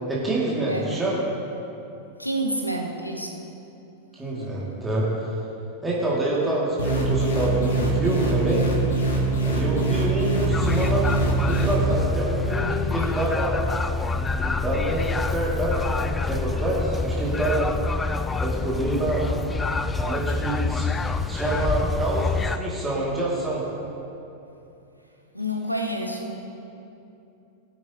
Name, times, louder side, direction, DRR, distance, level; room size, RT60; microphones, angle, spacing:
voice 1, 0.1-1.2 4.1-5.3 5.8-8.7 9.4-11.1 11.4-13.6 14.4-17.7 18.4-19.3 19.9-20.9 21.3-23.6, right 2 dB, 10° right, -6 dB, 2.3 m, -26 dB
voice 2, 2.2-3.4 25.3-26.4, right 1 dB, 90° left, 3 dB, 1.1 m, -28 dB
sound 1, 6.8-11.9, right 3 dB, 65° left, 1.7 m, -23 dB
sound 2, 10.5-22.6, left 4 dB, 15° left, 0.4 m, -27 dB
18.0 x 8.4 x 2.9 m, 2.8 s
figure-of-eight pair, 90°, 0 cm